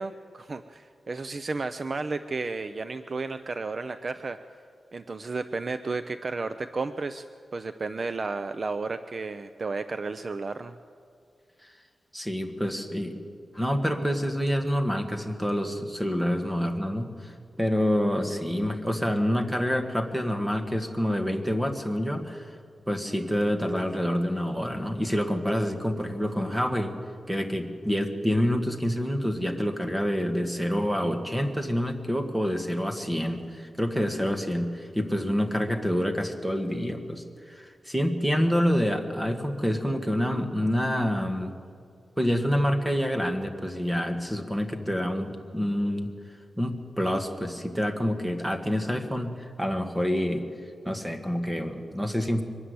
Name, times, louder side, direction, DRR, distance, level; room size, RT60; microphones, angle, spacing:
voice 1, 0.0-4.4 4.9-7.2 7.5-10.7, right 3 dB, 35° right, 10 dB, 0.5 m, -33 dB
voice 2, 12.1-13.2 13.5-22.5 22.9-27.0 27.3-41.5 42.2-46.1 46.6-50.4 50.8-52.4, equal, 5° right, 5 dB, 1.6 m, -27 dB
23.0 x 13.0 x 9.6 m, 2.2 s
wide cardioid pair, 155°, 0 cm